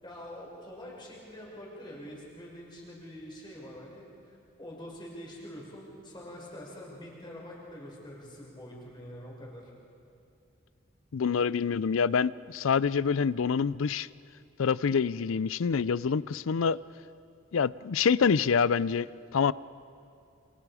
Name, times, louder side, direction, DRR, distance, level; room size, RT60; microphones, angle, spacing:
voice 1, 0.0-9.7, equal, 20° left, -3 dB, 5.5 m, -45 dB
voice 2, 11.1-14.1 14.6-16.8 17.5-19.5, left 6 dB, 75° left, 19 dB, 0.4 m, -26 dB
29.0 x 27.0 x 4.9 m, 2.6 s
head